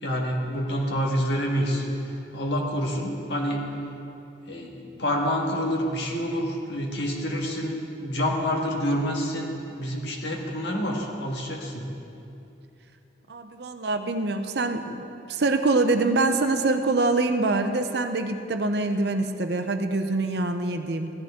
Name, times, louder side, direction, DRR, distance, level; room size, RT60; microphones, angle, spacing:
voice 1, 0.0-3.6 4.5-11.9, equal, 65° left, 0 dB, 1.7 m, -28 dB
voice 2, 13.3-21.1, right 3 dB, 60° right, 7 dB, 0.7 m, -25 dB
16.0 x 12.0 x 3.7 m, 2.8 s
head